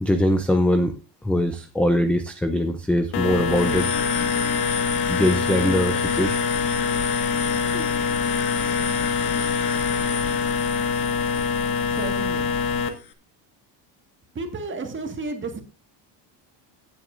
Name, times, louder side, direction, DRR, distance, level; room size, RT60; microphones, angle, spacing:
voice 1, 0.0-0.9 1.2-3.9 5.1-6.4 7.7-7.9, left 1 dB, 5° left, 7 dB, 0.5 m, -22 dB
sound 1, 3.1-12.9, left 6 dB, 55° left, 1.6 m, -24 dB
voice 2, 11.8-12.6 14.4-15.6, right 3 dB, 25° right, 5 dB, 1.7 m, -32 dB
17.0 x 8.0 x 2.5 m, 0.30 s
cardioid pair, 165°, 47 cm